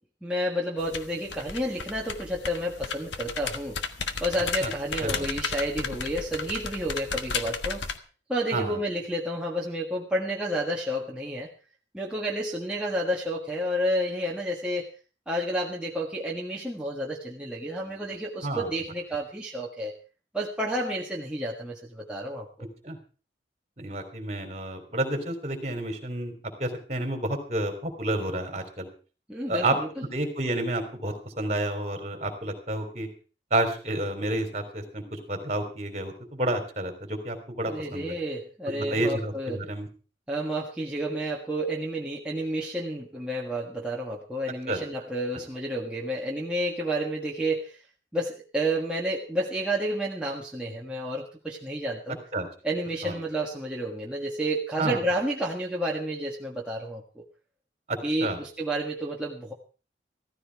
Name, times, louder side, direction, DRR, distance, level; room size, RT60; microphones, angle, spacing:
voice 1, 0.2-3.8 4.2-7.8 8.3-11.5 11.9-14.9 15.3-19.9 20.3-22.7 29.3-30.1 37.7-39.6 40.3-47.8 48.1-52.2 52.6-57.2 58.0-59.5, right 1 dB, 5° right, -4 dB, 1.6 m, -30 dB
sound 1, 0.8-8.0, left 5 dB, 80° left, 1.3 m, -34 dB
voice 2, 23.8-26.3 26.6-28.9 29.5-29.7 30.1-33.1 33.5-38.2 38.7-39.9 44.7-44.8 52.3-52.5 53.0-53.1 54.8-55.0 57.9-58.4, right 1 dB, 35° right, 6 dB, 3.5 m, -30 dB
15.0 x 14.5 x 4.7 m, 0.37 s
head